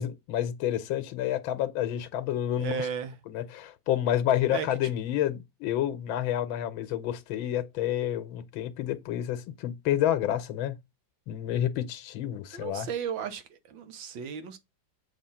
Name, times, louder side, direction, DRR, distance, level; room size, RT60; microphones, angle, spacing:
voice 1, 0.0-2.9 3.3-10.8 11.3-12.9, left 11 dB, 85° left, 1.6 m, -29 dB
voice 2, 2.6-3.2 4.5-4.7 12.5-14.6, right 7 dB, 75° right, 1.7 m, -34 dB
7.4 x 2.9 x 5.5 m
omnidirectional pair, 2.1 m